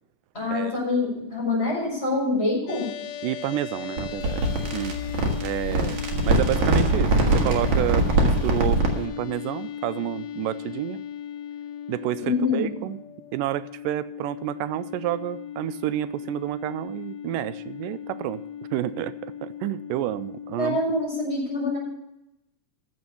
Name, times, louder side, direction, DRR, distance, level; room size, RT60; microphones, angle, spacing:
voice 1, 0.3-2.8 12.2-12.6 20.6-21.8, left 3 dB, 20° left, -2 dB, 5.0 m, -25 dB
sound 1, 2.7-21.1, left 10 dB, 85° left, 2.2 m, -37 dB
voice 2, 3.2-4.4 4.7-5.0 5.4-11.0 11.9-13.0 13.3-18.4 18.7-20.8, right 14 dB, 90° right, 15 dB, 2.2 m, -29 dB
sound 2, 4.0-9.0, right 2 dB, 65° right, 3.1 m, -22 dB
14.0 x 6.2 x 7.0 m, 0.86 s
omnidirectional pair, 3.8 m